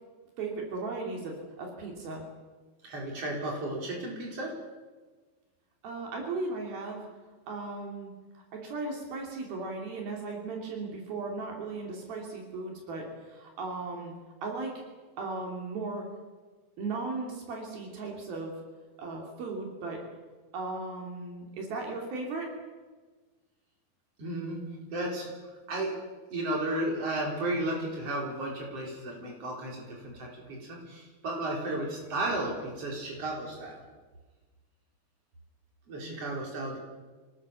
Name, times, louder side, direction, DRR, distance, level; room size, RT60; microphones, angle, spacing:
voice 1, 0.4-2.3 5.8-7.1 7.5-14.1 14.4-14.8 15.2-16.1 16.8-18.6 19.0-20.0 20.5-22.5 36.0-36.2, right 3 dB, 80° right, 1 dB, 4.8 m, -36 dB
voice 2, 2.8-4.5 24.2-25.3 25.7-25.9 26.3-33.8 35.9-36.8, right 1 dB, 40° right, -1 dB, 5.5 m, -34 dB
25.5 x 18.5 x 7.0 m, 1.3 s
omnidirectional pair, 4.2 m